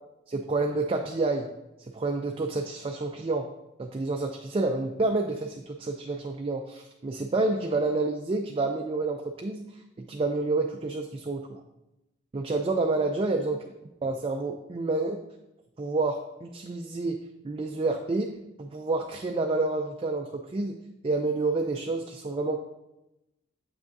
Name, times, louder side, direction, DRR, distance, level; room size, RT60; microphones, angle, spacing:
voice 1, 0.3-1.5 1.8-3.5 3.8-11.6 12.3-13.6 14.0-15.2 15.8-20.8 21.0-22.6, right 3 dB, 30° right, 3 dB, 0.3 m, -29 dB
7.7 x 5.9 x 2.6 m, 0.93 s
head